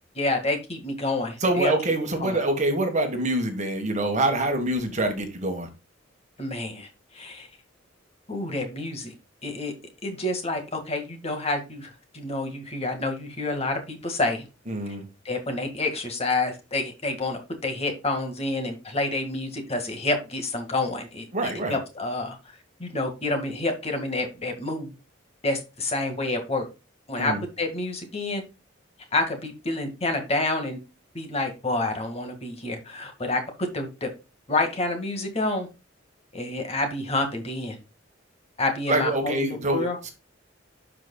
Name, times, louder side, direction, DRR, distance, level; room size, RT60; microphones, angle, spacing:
voice 1, 0.2-1.7 2.2-2.4 6.4-6.9 7.1-7.5 8.3-9.1 9.4-9.7 10.0-14.5 15.3-22.4 22.8-24.9 25.4-26.7 27.1-28.4 29.1-30.8 31.1-34.1 34.5-35.7 36.3-37.8 38.6-40.0, left 2 dB, 30° left, 1.9 m, -28 dB
voice 2, 1.4-5.7 14.7-15.0 21.3-21.8 27.2-27.4 38.9-40.1, right 2 dB, 35° right, 1.5 m, -25 dB
12.0 x 5.1 x 2.3 m
head